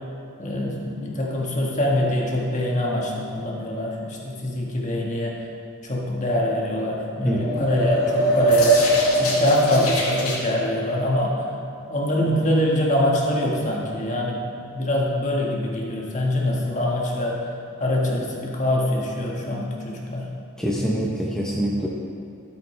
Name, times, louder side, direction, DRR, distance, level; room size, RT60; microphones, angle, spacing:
voice 1, 0.4-5.4 5.8-8.8 9.2-11.5 11.9-17.4 17.8-20.3, left 1 dB, 35° left, -2 dB, 1.6 m, -24 dB
sound 1, 7.1-10.4, right 1 dB, 85° left, 1.8 m, -21 dB
voice 2, 7.2-7.7 20.6-21.9, equal, 5° left, -5 dB, 0.8 m, -25 dB
12.5 x 8.5 x 3.3 m, 2.6 s
head